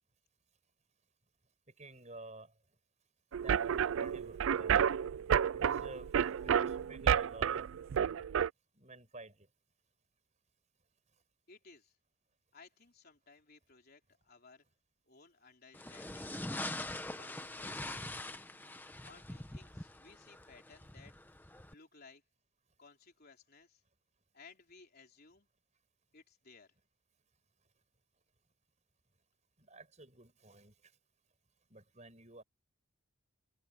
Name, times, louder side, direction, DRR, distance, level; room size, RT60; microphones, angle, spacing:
voice 1, 1.7-2.5 3.3-4.8 5.5-7.7 8.7-9.5 29.6-30.9 31.7-32.4, right 2 dB, 30° right, 6.3 m, -52 dB
sound 1, 3.3-8.5, right 8 dB, 65° right, 0.4 m, -31 dB
voice 2, 11.5-12.0 12.5-14.6 15.1-16.7 17.2-18.2 19.0-21.1 21.7-22.2 22.8-23.8 24.3-25.5 26.1-26.7, left 4 dB, 45° left, 3.9 m, -59 dB
sound 2, 15.7-21.7, left 1 dB, 10° left, 1.2 m, -43 dB
head